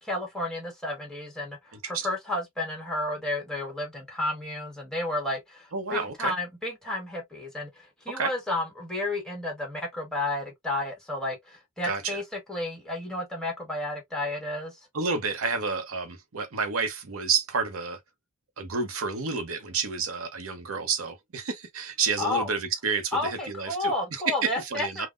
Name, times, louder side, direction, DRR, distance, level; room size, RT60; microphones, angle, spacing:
voice 1, 0.0-14.8 22.2-22.5 23.1-25.1, left 2 dB, 5° left, 1.2 m, -32 dB
voice 2, 5.7-6.3 8.2-8.3 11.8-12.2 14.9-18.0 18.6-23.9 24.4-25.1, right 5 dB, 80° right, 0.8 m, -30 dB
3.6 x 2.1 x 2.3 m
head